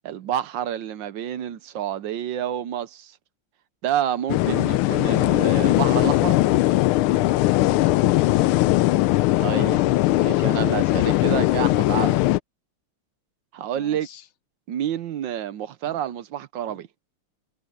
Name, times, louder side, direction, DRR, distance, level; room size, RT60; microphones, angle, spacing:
voice 1, 0.0-3.1 3.8-6.4 9.4-9.8 10.2-12.2 13.5-14.1 14.7-16.9, right 10 dB, 70° right, 1.4 m, -28 dB
sound 1, 4.3-12.4, left 17 dB, 80° left, 1.4 m, -20 dB
voice 2, 4.5-4.8 7.6-8.7 13.7-14.3 15.8-16.0 16.7-16.8, left 7 dB, 65° left, 0.7 m, -43 dB
omnidirectional pair, 2.3 m